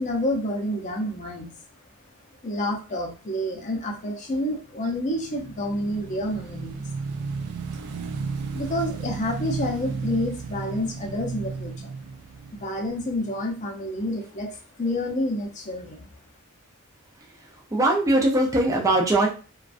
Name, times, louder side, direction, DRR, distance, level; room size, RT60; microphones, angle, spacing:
voice 1, 0.0-1.5 2.4-6.8 8.5-11.9 12.5-16.1, left 1 dB, 35° left, 1 dB, 0.6 m, -29 dB
Motorcycle / Engine, 5.0-13.4, right 4 dB, 90° right, 0.4 m, -34 dB
voice 2, 17.7-19.3, right 2 dB, 15° right, -2 dB, 0.5 m, -20 dB
2.5 x 2.2 x 2.4 m, 0.35 s
head